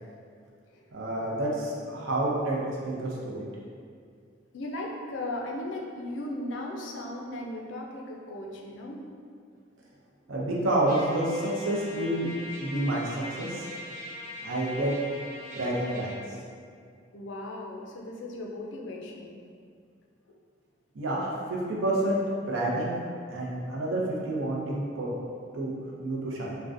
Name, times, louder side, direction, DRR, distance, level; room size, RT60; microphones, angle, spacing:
voice 1, 0.9-3.5 10.3-12.3 12.6-13.7 14.4-14.9 15.6-16.2 20.9-22.2 22.5-22.9 23.3-25.1 25.5-26.6, right 1 dB, 80° right, -4 dB, 0.6 m, -29 dB
voice 2, 4.5-9.0 16.3-16.4 17.1-19.4, left 1 dB, 70° left, 0 dB, 0.4 m, -37 dB
Trumpet, 10.9-16.2, left 1 dB, 20° right, 1.2 m, -42 dB
3.6 x 2.2 x 2.5 m, 2.2 s
head